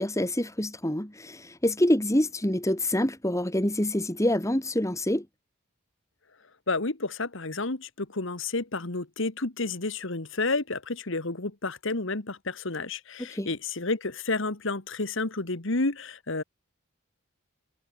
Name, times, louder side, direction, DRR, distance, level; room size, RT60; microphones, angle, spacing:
voice 1, 0.0-5.2 13.3-13.5, left 1 dB, 15° left, 2.7 m, -26 dB
voice 2, 6.7-16.4, left 3 dB, 60° left, 1.8 m, -30 dB
head